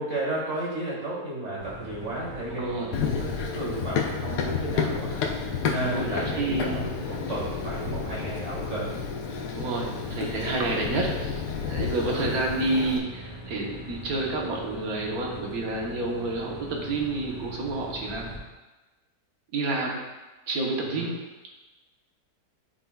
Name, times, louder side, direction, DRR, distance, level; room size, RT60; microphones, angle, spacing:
voice 1, 0.0-5.1 5.6-8.9 11.9-12.3 20.8-21.1, right 1 dB, 50° right, -6 dB, 2.0 m, -33 dB
sound 1, 1.6-18.4, right 1 dB, 55° left, 2.1 m, -41 dB
voice 2, 2.5-3.0 5.8-6.9 9.5-18.3 19.5-20.0 20.5-21.2, right 2 dB, 65° right, -1 dB, 1.5 m, -29 dB
Run, 2.9-13.0, left 6 dB, 90° left, 1.3 m, -31 dB
11.5 x 3.9 x 2.3 m, 1.2 s
omnidirectional pair, 1.7 m